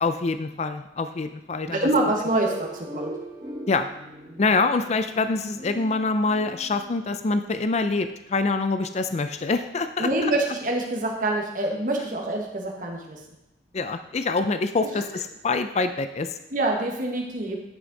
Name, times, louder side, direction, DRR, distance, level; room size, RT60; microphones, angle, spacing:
voice 1, 0.0-1.9 2.2-2.3 3.7-3.9 4.4-10.3 13.7-16.4, left 3 dB, 40° left, 9 dB, 0.4 m, -25 dB
voice 2, 1.7-3.1 10.0-13.2 14.8-14.9 16.5-17.6, right 2 dB, 50° right, 1 dB, 1.4 m, -26 dB
sound 1, 2.4-7.0, right 1 dB, 20° right, 2.2 m, -39 dB
9.8 x 6.1 x 4.0 m, 0.90 s
head